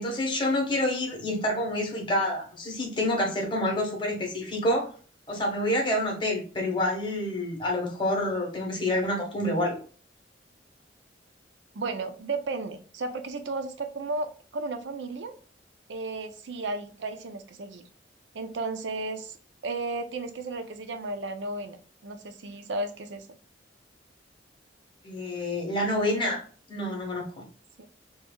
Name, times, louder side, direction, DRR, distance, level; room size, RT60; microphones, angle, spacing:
voice 1, 0.0-4.9 5.3-9.8 25.0-26.4 26.7-27.4, left 1 dB, 30° left, 1 dB, 1.3 m, -28 dB
voice 2, 11.7-14.3 14.5-15.3 15.9-17.8 18.3-19.4 19.6-23.3 27.8-27.9, right 3 dB, 85° right, 8 dB, 0.6 m, -34 dB
4.3 x 3.0 x 2.3 m, 0.40 s
head